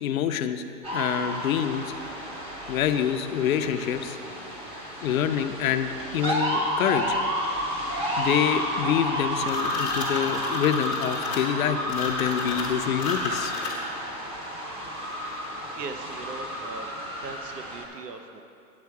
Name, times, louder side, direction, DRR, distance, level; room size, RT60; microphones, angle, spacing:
voice 1, 0.0-0.6 0.9-1.9 2.7-4.2 5.0-7.2 8.2-13.5, left 9 dB, 60° left, 8 dB, 0.7 m, -26 dB
sound 1, 0.8-17.8, equal, 10° right, 0.7 m, -31 dB
sound 2, 9.4-14.0, left 3 dB, 5° left, 0.3 m, -32 dB
voice 2, 15.8-16.9 17.2-18.4, right 4 dB, 85° right, 7 dB, 1.0 m, -39 dB
9.6 x 7.5 x 4.7 m, 2.7 s
hypercardioid pair, 145°, 47 cm